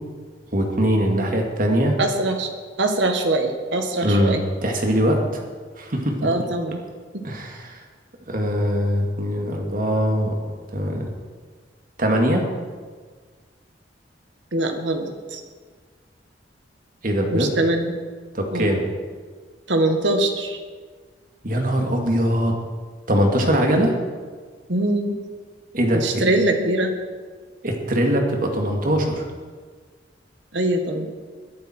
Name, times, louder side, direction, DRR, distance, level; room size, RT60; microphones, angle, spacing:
voice 1, 0.5-2.0 4.0-5.4 5.8-6.3 7.2-7.7 8.3-10.4 10.7-11.1 12.0-12.4 17.0-17.5 18.3-18.8 21.4-22.6 23.1-23.9 25.7-26.2 27.6-29.2, equal, 50° right, 2 dB, 2.4 m, -21 dB
voice 2, 2.0-2.5 2.8-4.4 6.2-6.8 7.1-7.2 14.5-15.4 17.3-17.9 18.5-18.7 19.7-20.6 24.7-25.2 25.9-26.9 30.5-31.1, right 2 dB, 85° right, 5 dB, 1.9 m, -22 dB
22.0 x 11.5 x 4.6 m, 1.5 s
head